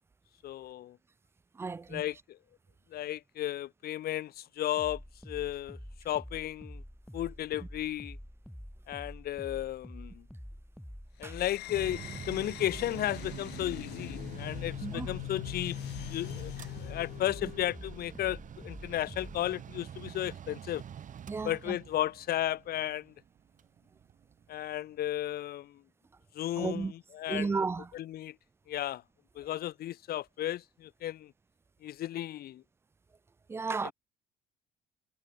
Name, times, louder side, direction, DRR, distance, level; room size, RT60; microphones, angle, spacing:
voice 1, 0.4-1.0 1.9-2.4 2.9-5.0 5.3-5.8 6.0-6.8 7.1-8.2 8.9-10.2 11.2-16.5 16.8-20.8 21.4-23.1 24.5-25.8 26.3-27.6 27.9-28.4 28.7-29.0 29.4-31.3 31.8-32.6 33.8-33.9, left 13 dB, 65° left, 2.1 m, -34 dB
voice 2, 1.6-2.0 11.2-11.3 14.8-15.1 21.3-21.8 26.6-26.9 27.3-27.9 33.5-33.9, right 4 dB, 15° right, 0.4 m, -33 dB
sound 1, 4.8-19.5, equal, ahead, 5.1 m, -47 dB
sound 2, 11.2-17.9, left 19 dB, 85° left, 2.3 m, -42 dB
Mechanical fan, 11.7-25.1, right 9 dB, 50° right, 5.0 m, -47 dB
cardioid pair, 110°, 17 cm